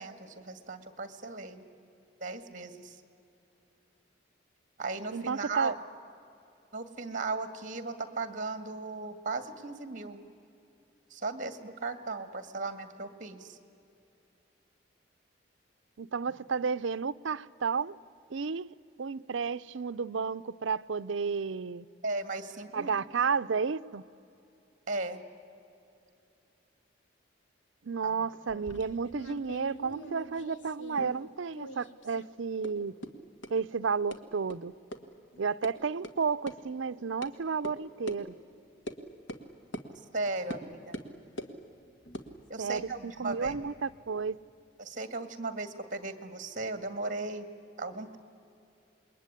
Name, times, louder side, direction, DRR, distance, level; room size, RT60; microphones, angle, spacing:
voice 1, 0.0-1.6 2.2-3.0 4.8-5.7 6.7-10.2 11.1-13.6 22.0-22.9 24.9-25.2 28.0-28.2 28.5-28.7 40.0-41.0 42.5-43.6 44.8-47.5 47.8-48.2, right 3 dB, 40° right, 1.9 m, -37 dB
voice 2, 5.1-5.7 16.0-18.0 18.3-21.9 22.7-24.0 27.8-32.9 33.5-34.7 35.4-38.3 42.6-44.4, right 5 dB, 75° right, 0.6 m, -32 dB
sound 1, 28.5-31.3 31.5-32.3 32.6-32.7 33.0-33.1 33.4-33.5 34.1-34.2 34.5-34.6 34.9-35.0 35.3-35.7 36.0-36.1 36.5-36.6 37.2-37.3 37.6-37.7 38.1-38.2 38.9-39.0 39.3-39.4 39.7-39.9 40.5-40.6 40.9-41.5 42.0-43.6, equal, 75° left, 1.8 m, -42 dB
27.5 x 21.5 x 9.9 m
head